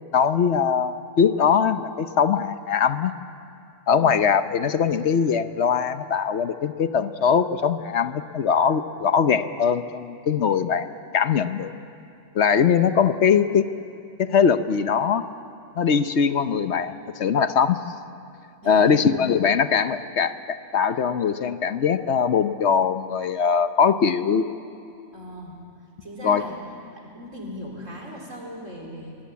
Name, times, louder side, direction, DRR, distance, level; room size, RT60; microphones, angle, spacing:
voice 1, 0.1-3.1 3.9-10.9 11.1-11.7 12.3-13.7 14.2-15.3 15.7-17.8 18.7-24.5 26.2-26.4, left 7 dB, 65° left, 11 dB, 1.1 m, -21 dB
voice 2, 3.9-4.2 18.6-19.2 25.1-25.6 26.0-26.6 26.9-29.2, equal, 80° right, -1 dB, 4.8 m, -38 dB
23.0 x 20.5 x 8.4 m, 2.5 s
omnidirectional pair, 1.3 m